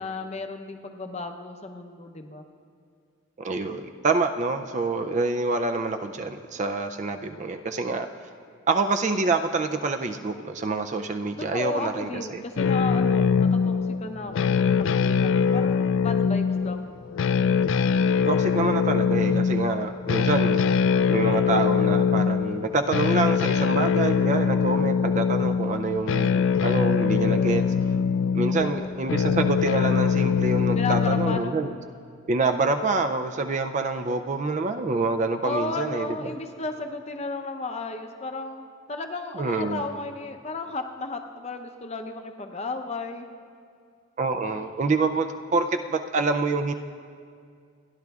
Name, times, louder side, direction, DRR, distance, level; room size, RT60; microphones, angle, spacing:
voice 1, 0.0-2.4 11.4-16.9 28.4-28.9 30.7-31.5 35.4-43.3, left 3 dB, 30° left, 5 dB, 0.6 m, -34 dB
voice 2, 3.4-8.1 8.7-12.4 18.3-20.6 21.1-27.6 28.3-31.7 32.3-36.1 39.4-39.9 44.2-46.7, right 3 dB, 35° right, 8 dB, 0.3 m, -26 dB
sound 1, 12.6-31.4, left 6 dB, 60° left, 0.3 m, -23 dB
30.0 x 10.5 x 2.3 m, 2.2 s
head